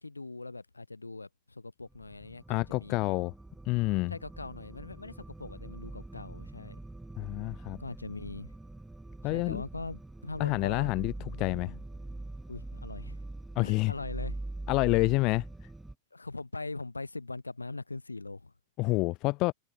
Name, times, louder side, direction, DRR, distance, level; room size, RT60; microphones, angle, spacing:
voice 1, 0.0-3.0 4.1-6.8 7.8-8.5 9.2-11.8 12.5-13.2 13.6-14.4 16.1-18.5, left 3 dB, 80° left, 7.3 m, -41 dB
sound 1, 1.9-15.9, right 2 dB, 5° right, 4.4 m, -43 dB
voice 2, 2.5-3.3 3.7-4.1 7.2-7.8 9.2-9.6 10.4-11.1 11.4-11.7 13.6-13.9 14.7-15.4 18.8-19.5, left 22 dB, 40° left, 0.7 m, -28 dB
figure-of-eight pair, 90°, 0 cm